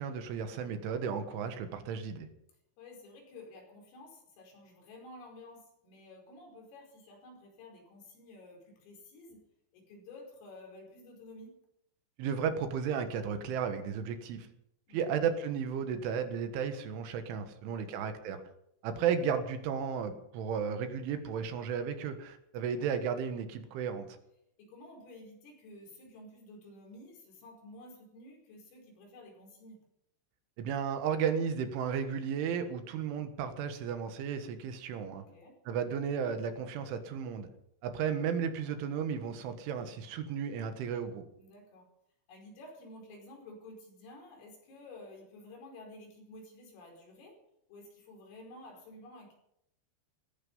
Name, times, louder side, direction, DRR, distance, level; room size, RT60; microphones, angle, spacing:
voice 1, 0.0-2.3 12.2-14.5 14.9-18.4 18.8-24.2 30.6-35.2 35.7-37.5 37.8-41.2, right 7 dB, 75° right, 8 dB, 3.7 m, -34 dB
voice 2, 2.8-9.5 9.7-11.6 14.9-15.2 17.6-18.0 22.6-23.0 24.6-29.9 32.9-33.3 35.1-35.6 41.4-41.9 42.3-47.4 47.7-49.3, left 2 dB, 80° left, 1 dB, 7.6 m, -52 dB
17.5 x 15.0 x 5.5 m, 0.75 s
omnidirectional pair, 5.9 m